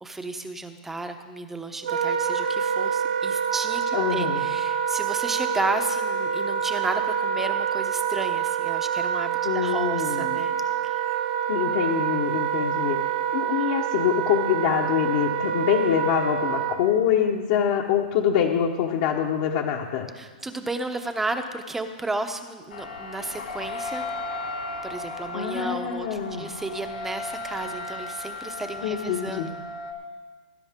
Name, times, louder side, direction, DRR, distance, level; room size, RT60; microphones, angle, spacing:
voice 1, 0.0-10.5 10.8-11.2 20.1-24.0 24.8-29.5, right 2 dB, 5° right, 7 dB, 0.8 m, -33 dB
Wind instrument woodwind instrument, 1.8-16.8, right 8 dB, 90° right, 1.7 m, -26 dB
voice 2, 3.9-4.4 9.4-10.4 11.5-13.0 13.3-20.1 25.3-26.5 28.8-29.5, left 9 dB, 45° left, 1 dB, 1.2 m, -25 dB
sound 1, 22.7-29.9, left 2 dB, 85° left, 2.0 m, -35 dB
18.5 x 10.0 x 3.7 m, 1.4 s
hypercardioid pair, 150°, 5 cm